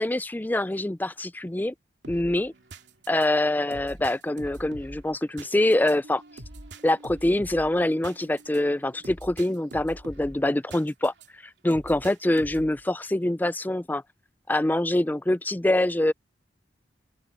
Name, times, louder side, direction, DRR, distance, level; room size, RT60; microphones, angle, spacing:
voice 1, 0.0-1.7 2.1-2.5 3.1-6.2 6.8-14.0 14.5-16.1, left 1 dB, 10° left, 0.4 m, -25 dB
sound 1, 2.0-11.3 11.7-12.8, right 1 dB, 85° right, 2.5 m, -44 dB
open air
head